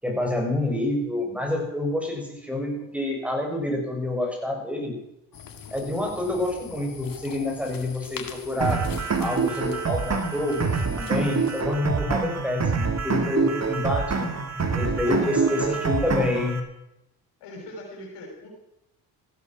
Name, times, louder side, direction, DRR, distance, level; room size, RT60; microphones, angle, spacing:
voice 1, 0.0-5.0 5.7-8.8 9.2-10.6 11.0-14.3 14.7-16.6, left 1 dB, 5° right, 1 dB, 6.5 m, -27 dB
sound 1, 5.3-11.6, left 7 dB, 50° left, 2.2 m, -43 dB
sound 2, 8.6-16.6, right 5 dB, 40° right, 2.5 m, -26 dB
voice 2, 15.0-16.1 17.4-18.5, left 2 dB, 80° left, 0 dB, 5.9 m, -41 dB
15.0 x 12.5 x 6.1 m, 0.88 s
supercardioid pair, 55°, 42 cm